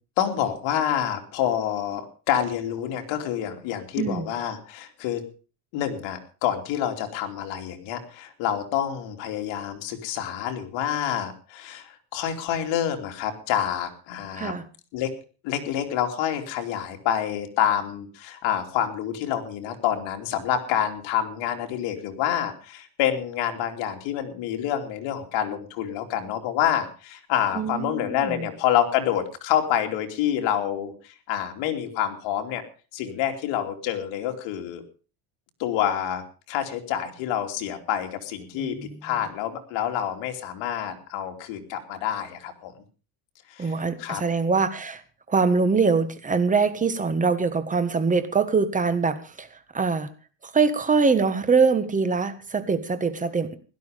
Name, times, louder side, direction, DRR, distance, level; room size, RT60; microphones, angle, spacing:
voice 1, 0.2-5.2 5.7-14.5 14.9-15.1 15.4-32.6 32.9-34.8 35.6-36.2 36.5-38.8 39.0-42.7 43.5-44.2, left 10 dB, 70° left, 4 dB, 3.1 m, -27 dB
voice 2, 4.0-4.3 14.3-14.6 27.5-28.5 38.6-39.0 43.6-45.0 45.3-49.5 49.7-50.1 50.5-53.6, right 4 dB, 15° right, 11 dB, 1.5 m, -23 dB
16.5 x 12.5 x 5.1 m, 0.37 s
cardioid pair, 145°, 46 cm